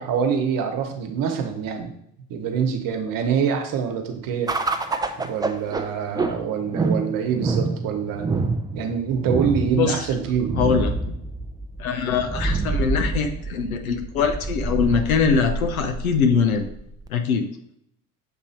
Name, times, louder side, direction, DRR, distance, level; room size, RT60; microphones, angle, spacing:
voice 1, 0.0-1.9 2.3-4.5 5.2-10.5, right 7 dB, 55° right, 4 dB, 1.3 m, -25 dB
sound 1, 4.5-17.1, right 3 dB, 10° right, 0.5 m, -27 dB
voice 2, 9.7-10.1 10.5-11.0 11.8-16.7 17.1-17.4, left 6 dB, 90° left, 7 dB, 0.8 m, -22 dB
7.3 x 3.0 x 4.4 m, 0.74 s
hypercardioid pair, 75°, 41 cm